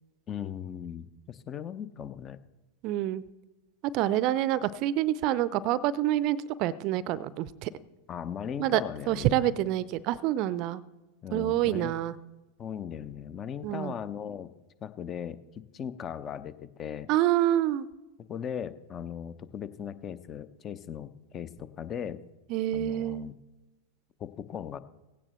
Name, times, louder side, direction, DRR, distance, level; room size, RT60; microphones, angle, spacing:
voice 1, 0.3-2.4 8.1-9.4 11.2-11.9 12.6-14.5 14.8-17.1 18.3-22.2 22.7-23.4 24.2-24.8, left 8 dB, 30° left, 14 dB, 0.7 m, -38 dB
voice 2, 2.8-3.2 3.9-7.7 8.6-8.8 9.1-10.8 11.3-12.2 13.6-13.9 17.1-17.9 22.5-23.3, right 13 dB, 45° right, 20 dB, 0.5 m, -27 dB
17.0 x 16.5 x 3.1 m, 1.1 s
figure-of-eight pair, 90°, 0 cm